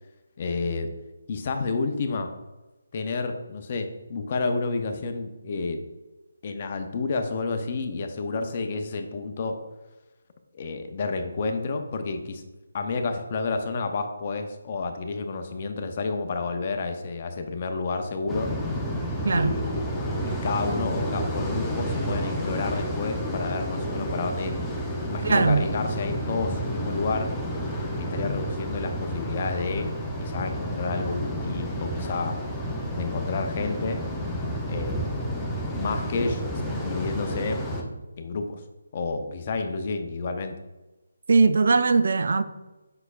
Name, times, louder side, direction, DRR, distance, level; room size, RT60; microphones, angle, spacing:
voice 1, 0.4-0.9 1.3-2.3 2.9-5.8 6.4-9.5 10.5-12.4 12.7-18.5 19.3-24.5 25.1-27.3 28.1-29.9 30.2-32.3 33.0-34.0 34.7-35.0 35.7-36.4 36.7-37.6 38.2-38.6 38.9-40.6, left 4 dB, 40° left, 0.7 m, -30 dB
sound 1, 18.3-37.8, equal, 5° left, 0.7 m, -30 dB
voice 2, 19.2-19.6 25.2-25.7 41.3-42.4, right 4 dB, 60° right, 0.4 m, -20 dB
7.8 x 5.7 x 2.5 m
figure-of-eight pair, 155°, 0 cm